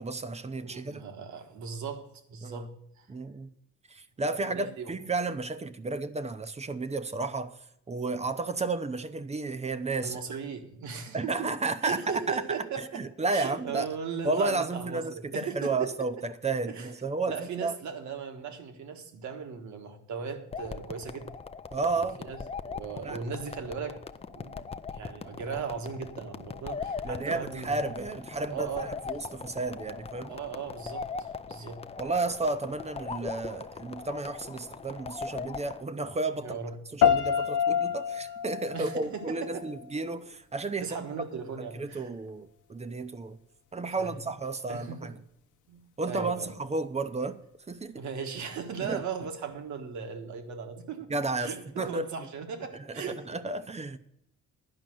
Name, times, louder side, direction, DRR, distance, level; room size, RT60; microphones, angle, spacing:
voice 1, 0.0-1.0 2.4-2.6 3.1-3.5 3.9-7.6 7.9-10.2 11.1-12.0 12.3-12.4 12.8-13.9 14.2-17.7 21.7-22.2 23.0-23.2 27.0-30.3 32.0-36.6 36.9-41.0 41.7-43.4 43.7-45.1 46.0-47.4 47.7-48.0 48.8-49.0 51.1-52.1 52.9-54.0, right 3 dB, 20° right, 0.7 m, -32 dB
voice 2, 0.6-3.1 4.5-4.9 10.0-11.5 11.8-13.0 13.3-16.1 16.6-16.9 17.3-21.4 22.2-22.4 22.7-24.0 24.3-27.8 28.5-29.0 30.3-31.1 31.4-31.8 36.4-36.8 38.7-39.6 40.8-42.1 44.0-44.2 44.7-45.1 45.7-46.5 48.0-51.1 51.4-53.3, right 6 dB, 70° right, 1.5 m, -37 dB
sound 1, 20.5-35.8, left 5 dB, 20° left, 0.5 m, -40 dB
sound 2, 37.0-40.0, left 8 dB, 80° left, 0.8 m, -27 dB
10.5 x 5.2 x 7.6 m
cardioid pair, 90°, 30 cm